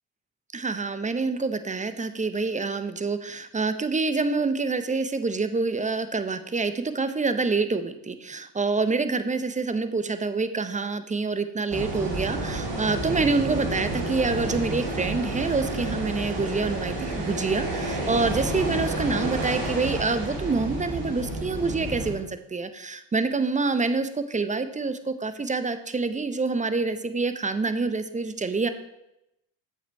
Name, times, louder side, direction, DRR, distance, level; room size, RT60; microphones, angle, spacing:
voice 1, 0.5-28.7, right 3 dB, 15° right, 11 dB, 0.5 m, -27 dB
sound 1, 11.7-22.1, right 2 dB, 55° right, 2.9 m, -30 dB
7.4 x 5.4 x 4.5 m, 0.86 s
hypercardioid pair, 60°, 50 cm